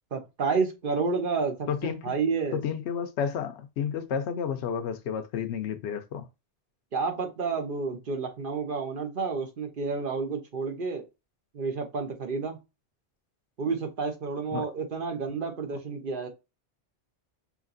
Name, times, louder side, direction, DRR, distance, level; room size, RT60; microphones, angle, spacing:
voice 1, 0.1-2.6 6.9-11.0 11.5-12.6 13.6-16.3, right 4 dB, 50° right, 1.1 m, -30 dB
voice 2, 1.7-2.1 2.5-6.3 14.5-14.7, left 7 dB, 75° left, 0.9 m, -31 dB
5.0 x 2.8 x 2.5 m
omnidirectional pair, 1.2 m